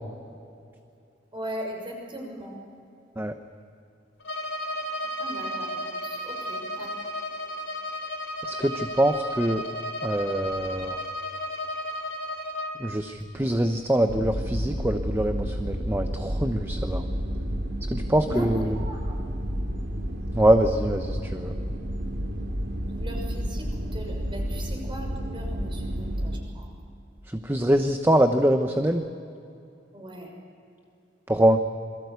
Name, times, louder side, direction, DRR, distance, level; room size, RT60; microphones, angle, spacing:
voice 1, 1.3-2.6 5.2-6.9 18.2-19.3 22.8-26.7 29.9-30.3, equal, 30° right, 1 dB, 6.3 m, -38 dB
Bowed string instrument, 4.2-12.8, equal, 75° left, 4.2 m, -33 dB
voice 2, 8.5-9.6 10.0-11.0 12.8-17.0 17.9-18.8 20.3-21.5 27.3-29.0 31.3-31.6, right 1 dB, 15° right, 6 dB, 0.9 m, -24 dB
sound 1, 14.1-26.4, equal, 65° right, 2.9 m, -31 dB
27.0 x 22.5 x 8.3 m, 2.5 s
head